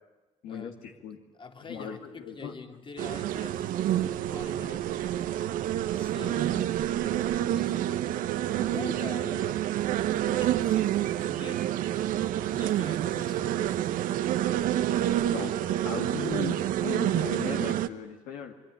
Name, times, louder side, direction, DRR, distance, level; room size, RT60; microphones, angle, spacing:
voice 1, 0.5-1.0 1.4-5.2 5.9-8.1 8.5-9.6 10.0-11.8 12.5-13.6 15.2-15.8, left 4 dB, 35° left, 5 dB, 2.9 m, -45 dB
voice 2, 1.7-2.6 15.3-15.5 15.8-18.5, left 7 dB, 85° left, 3 dB, 2.2 m, -37 dB
sound 1, 3.0-17.9, right 12 dB, 80° right, 0.9 m, -28 dB
25.0 x 23.0 x 10.0 m, 1.1 s
supercardioid pair, 65°, 14 cm